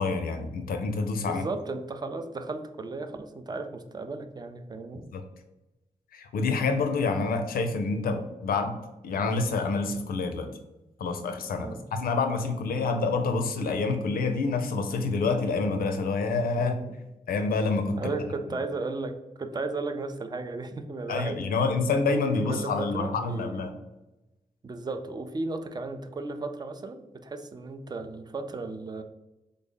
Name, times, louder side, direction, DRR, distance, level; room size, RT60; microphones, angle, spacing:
voice 1, 0.0-1.5 5.1-5.2 6.1-10.5 11.0-16.7 17.3-18.1 21.1-23.7, left 4 dB, 85° left, 6 dB, 0.4 m, -27 dB
voice 2, 1.2-5.1 11.6-11.8 12.9-13.0 16.6-16.9 18.0-21.4 22.5-23.6 24.6-29.0, right 3 dB, 30° right, 8 dB, 0.4 m, -35 dB
3.4 x 2.0 x 3.8 m, 0.98 s
cardioid pair, 70°, 15 cm